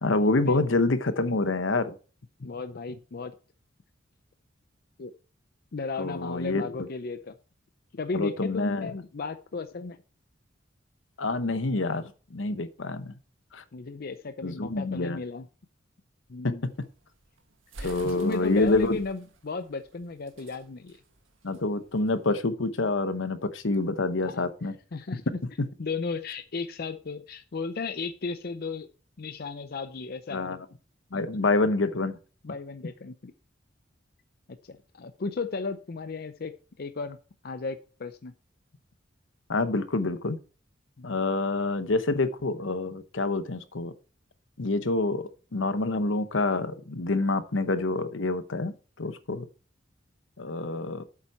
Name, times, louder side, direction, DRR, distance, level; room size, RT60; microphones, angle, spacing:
voice 1, 0.0-2.0 6.0-6.7 8.1-8.9 11.2-13.1 13.5-13.6 14.4-15.2 16.4-16.7 17.8-19.0 21.4-24.7 30.3-30.6 31.1-32.1 39.5-40.4 41.0-43.9 44.6-49.5 50.4-51.0, left 2 dB, 80° left, 11 dB, 1.0 m, -27 dB
voice 2, 2.4-3.3 5.0-5.1 5.7-7.3 7.9-10.0 13.7-15.5 16.3-16.6 17.8-21.0 24.2-24.5 24.9-25.4 25.8-28.9 29.2-30.6 31.1-31.2 32.4-33.3 34.6-36.5 36.8-37.2 37.4-38.3 41.0-41.2, left 4 dB, 55° left, 9 dB, 0.6 m, -35 dB
sound 1, 16.7-22.3, right 2 dB, 80° right, 1.7 m, -47 dB
8.3 x 7.3 x 4.3 m, 0.36 s
head